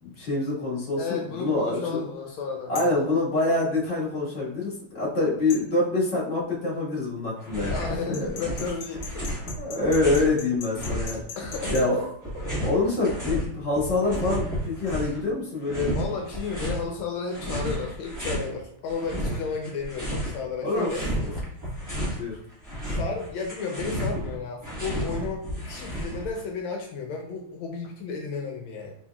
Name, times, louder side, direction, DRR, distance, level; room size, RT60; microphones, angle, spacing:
voice 1, 0.0-2.0 2.7-7.8 8.1-8.3 9.6-11.2 11.7-12.1 12.6-15.9 20.6-20.9 22.2-22.3, left 2 dB, 35° left, -7 dB, 1.7 m, -25 dB
voice 2, 0.9-2.9 7.7-9.5 11.4-11.9 15.9-21.0 22.8-28.9, left 4 dB, 80° left, 2 dB, 1.4 m, -33 dB
sound 1, 2.8-3.0 5.5-5.7 8.1-11.9, left 5 dB, 65° left, 1.7 m, -39 dB
sound 2, 7.4-8.0 8.2-10.3 10.8-13.5 13.7-15.2 15.6-16.8 17.3-18.5 18.9-20.4 20.7-22.2 22.5-26.4, equal, 15° right, 0.6 m, -32 dB
4.4 x 3.7 x 2.3 m, 0.66 s
omnidirectional pair, 2.2 m